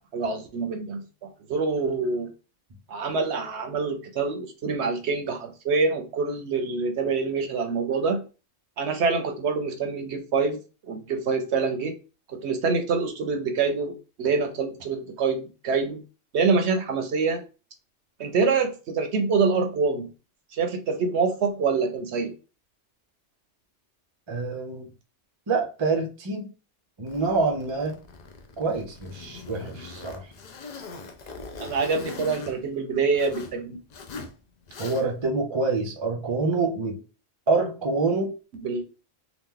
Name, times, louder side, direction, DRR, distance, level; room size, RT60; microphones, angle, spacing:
voice 1, 0.0-2.3 2.9-8.2 8.8-10.6 10.9-11.9 12.3-16.0 16.3-17.4 18.2-20.1 20.5-22.3 31.6-33.8 38.6-38.8, right 4 dB, 65° right, 6 dB, 0.9 m, -26 dB
voice 2, 24.3-24.9 25.5-26.5 27.0-28.0 28.6-30.2 34.8-37.0 37.5-38.3, right 3 dB, 30° right, 3 dB, 0.5 m, -26 dB
Zipper (clothing), 27.1-33.6 33.9-34.3 34.7-35.3, left 4 dB, 55° left, 0.4 m, -41 dB
2.9 x 2.4 x 3.6 m, 0.33 s
omnidirectional pair, 1.3 m